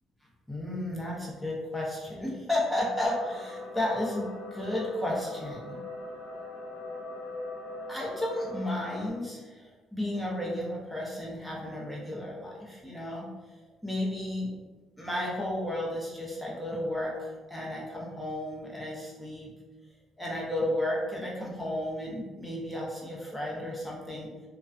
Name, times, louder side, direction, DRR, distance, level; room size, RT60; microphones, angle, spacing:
voice 1, 0.5-5.8 7.9-13.3 13.8-14.5 15.0-19.5 20.2-24.3, left 1 dB, ahead, -4 dB, 0.7 m, -33 dB
sound 1, 3.0-9.1, left 2 dB, 90° left, 0.6 m, -41 dB
2.4 x 2.2 x 2.4 m, 1.3 s
cardioid pair, 115°, 0 cm